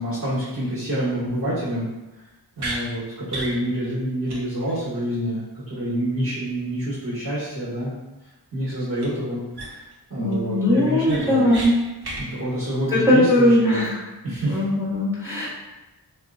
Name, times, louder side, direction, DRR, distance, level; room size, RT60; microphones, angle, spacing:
voice 1, 0.0-1.9 2.6-7.9 8.5-9.8 10.1-11.6 12.2-13.9 14.2-14.6 15.3-15.5, right 1 dB, 35° right, -12 dB, 1.1 m, -27 dB
sound 1, 2.6-2.8 3.3-3.6 3.9-4.0 4.3-4.4 4.7-4.8 9.0-9.1 9.5-9.9 10.3-10.4 10.8-11.7 12.0-12.2, right 2 dB, 65° right, 0.6 m, -32 dB
voice 2, 10.2-11.8 12.9-13.9 14.5-15.5, left 1 dB, 5° right, -8 dB, 0.8 m, -19 dB
2.8 x 2.3 x 2.3 m, 1.1 s
wide cardioid pair, 45°, 43 cm